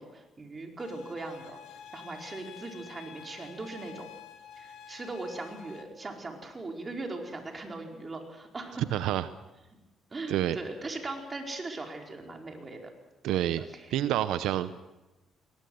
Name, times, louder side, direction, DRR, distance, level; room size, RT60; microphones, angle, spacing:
voice 1, 0.0-1.6 1.9-4.1 4.6-8.8 10.1-12.8 13.3-13.8, right 2 dB, 30° right, 2 dB, 4.6 m, -39 dB
sound 1, 0.8-5.8, left 8 dB, 90° left, 2.2 m, -49 dB
voice 2, 8.9-9.3 10.3-10.6 13.2-13.6 13.9-14.9, right 12 dB, 90° right, 13 dB, 0.7 m, -28 dB
22.0 x 19.0 x 8.0 m, 1.0 s
cardioid pair, 90°, 0 cm